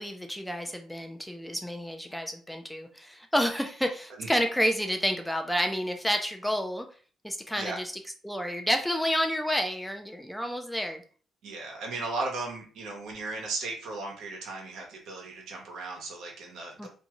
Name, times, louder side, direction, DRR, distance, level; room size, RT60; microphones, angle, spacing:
voice 1, 0.0-6.9 7.2-7.9 8.2-11.0 16.8-16.9, equal, 5° left, 5 dB, 0.4 m, -30 dB
voice 2, 11.4-16.9, right 3 dB, 85° right, 0 dB, 0.9 m, -36 dB
2.6 x 2.3 x 2.9 m, 0.41 s
cardioid pair, 90°, 0 cm